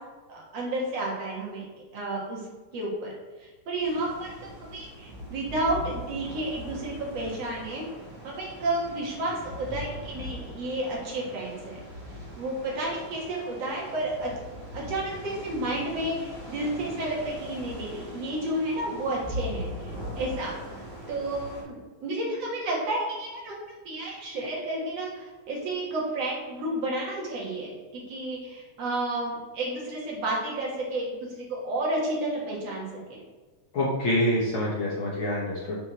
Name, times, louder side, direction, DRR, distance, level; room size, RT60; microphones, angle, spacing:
voice 1, 0.3-2.4 2.7-3.1 3.4-4.3 4.7-7.8 8.2-11.8 12.4-14.3 14.7-33.2, right 1 dB, 55° right, -3 dB, 2.3 m, -31 dB
sound 1, 3.8-21.6, equal, 15° right, 1.3 m, -40 dB
voice 2, 33.7-35.8, left 1 dB, 65° left, -5 dB, 1.2 m, -26 dB
6.1 x 5.6 x 4.1 m, 1.3 s
omnidirectional pair, 3.7 m